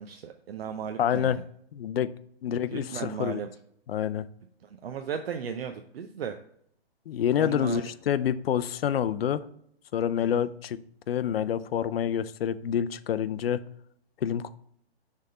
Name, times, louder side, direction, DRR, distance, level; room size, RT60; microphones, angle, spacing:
voice 1, 0.0-1.4 2.7-3.5 4.6-6.4 7.4-7.9 10.2-10.5, right 7 dB, 70° right, 6 dB, 0.7 m, -36 dB
voice 2, 1.0-1.4 1.7-2.1 2.4-3.4 3.9-4.3 7.1-9.4 9.9-10.8 11.1-13.6 14.2-14.5, left 9 dB, 70° left, 14 dB, 0.5 m, -27 dB
6.4 x 3.6 x 5.3 m, 0.68 s
hypercardioid pair, 145°, 31 cm